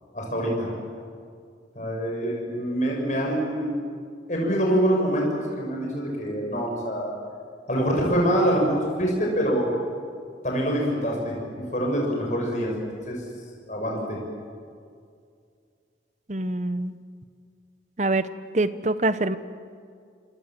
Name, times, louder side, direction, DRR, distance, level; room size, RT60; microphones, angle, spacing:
voice 1, 0.1-0.7 1.7-3.7 4.3-7.1 7.7-9.7 10.4-12.7 13.1-13.2 13.7-14.2, equal, 40° left, -1 dB, 6.7 m, -25 dB
voice 2, 16.3-17.0 18.0-18.3 18.5-19.4, right 2 dB, 40° right, 13 dB, 1.0 m, -24 dB
27.0 x 26.5 x 7.7 m, 2.2 s
head